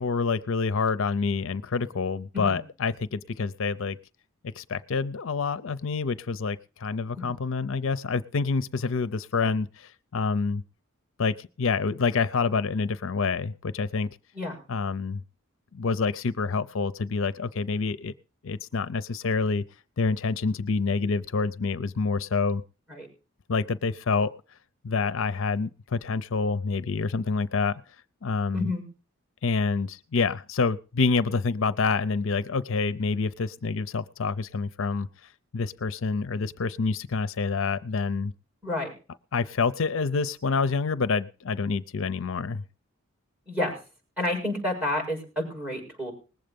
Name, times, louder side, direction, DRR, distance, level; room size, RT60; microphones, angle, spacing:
voice 1, 0.0-4.0 4.5-10.6 11.2-14.1 14.7-15.2 15.7-18.1 18.4-19.6 20.0-22.6 23.5-24.3 24.8-27.8 28.2-28.7 29.4-35.1 35.5-38.3 39.3-42.6, left 4 dB, 65° left, 15 dB, 0.6 m, -27 dB
voice 2, 28.5-28.8 38.6-38.9 43.5-43.8 44.2-46.1, left 1 dB, 10° right, 2 dB, 6.6 m, -30 dB
20.0 x 7.8 x 5.2 m, 0.34 s
head